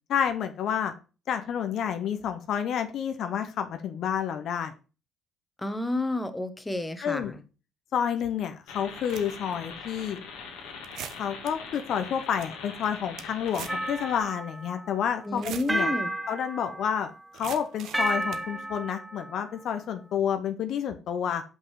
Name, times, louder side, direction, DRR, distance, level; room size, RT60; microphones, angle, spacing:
voice 1, 0.1-0.9 1.3-4.7 7.0-7.3 7.9-10.2 11.2-15.9 16.3-21.4, left 8 dB, 65° left, 8 dB, 0.7 m, -29 dB
voice 2, 5.6-7.4 15.2-16.1, left 2 dB, 15° left, 9 dB, 1.1 m, -31 dB
sound 1, 8.2-8.3 8.9-9.5 10.1-10.2 10.8-11.5 12.0-12.1 12.2-12.5 12.8-13.9 14.1-14.2 15.2-15.7 17.3-18.5, right 9 dB, 70° right, 0.6 m, -41 dB
sound 2, 8.7-14.2, left 5 dB, 80° left, 1.6 m, -42 dB
sound 3, 13.7-14.9 15.7-17.2 17.9-19.4, right 1 dB, 10° right, 0.6 m, -32 dB
5.4 x 5.4 x 4.7 m, 0.33 s
hypercardioid pair, 60°, 0 cm